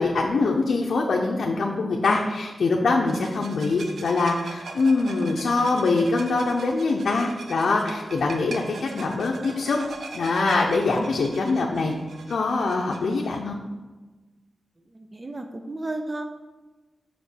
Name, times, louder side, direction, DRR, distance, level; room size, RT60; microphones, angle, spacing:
voice 1, 0.0-9.8 10.1-11.9 12.3-13.6, left 3 dB, 75° left, -1 dB, 0.7 m, -23 dB
sound 1, 3.1-13.4, right 3 dB, 85° right, 0.8 m, -41 dB
voice 2, 14.9-16.2, right 2 dB, 20° right, 5 dB, 0.4 m, -33 dB
5.8 x 5.1 x 6.2 m, 1.2 s
wide cardioid pair, 165°, 0 cm